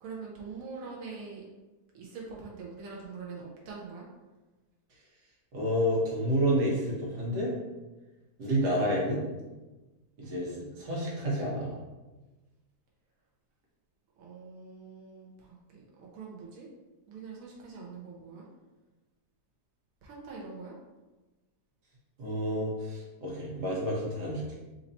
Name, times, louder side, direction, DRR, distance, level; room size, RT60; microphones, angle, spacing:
voice 1, 0.0-1.4 1.9-4.0 14.2-16.7 17.1-18.5 20.0-20.7, right 4 dB, 60° right, -3 dB, 1.2 m, -44 dB
voice 2, 5.5-7.5 8.4-9.2 10.2-11.7 22.2-24.5, equal, 85° right, -4 dB, 1.8 m, -29 dB
4.4 x 2.7 x 4.1 m, 1.1 s
omnidirectional pair, 1.7 m